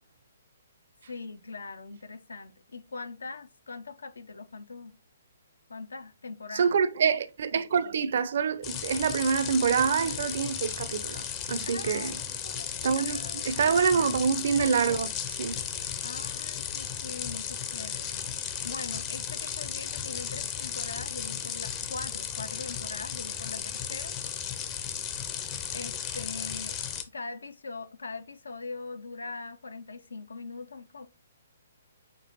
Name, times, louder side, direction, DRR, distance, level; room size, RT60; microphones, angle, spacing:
voice 1, 1.1-5.0 5.7-6.8 11.7-12.1 12.4-13.6 14.0-14.1 16.0-18.3 18.6-24.2 25.7-26.8 27.1-31.1, left 3 dB, 80° left, 0.4 m, -41 dB
voice 2, 6.5-12.2 12.8-13.2 13.4-15.6, right 6 dB, 60° right, 0.4 m, -26 dB
sound 1, 8.6-27.0, left 8 dB, 25° left, 0.5 m, -35 dB
6.0 x 3.0 x 2.8 m
figure-of-eight pair, 135°, 0 cm